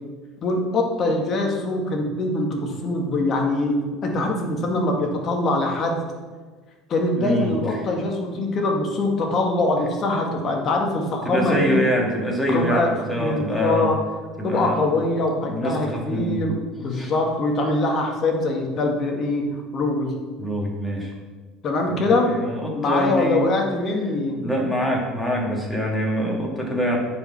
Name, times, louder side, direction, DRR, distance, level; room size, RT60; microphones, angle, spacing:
voice 1, 0.4-6.0 6.9-11.8 12.5-12.9 13.2-14.0 14.4-20.1 21.6-22.3 22.7-24.4, left 2 dB, 45° left, 1 dB, 2.0 m, -23 dB
voice 2, 7.2-7.9 8.3-8.4 10.3-10.4 11.2-13.9 14.4-14.9 15.4-16.4 16.9-17.1 20.4-21.1 21.9-23.5 24.4-27.0, equal, 10° left, -1 dB, 2.5 m, -25 dB
9.2 x 5.3 x 6.0 m, 1.4 s
supercardioid pair, 100°, 0 cm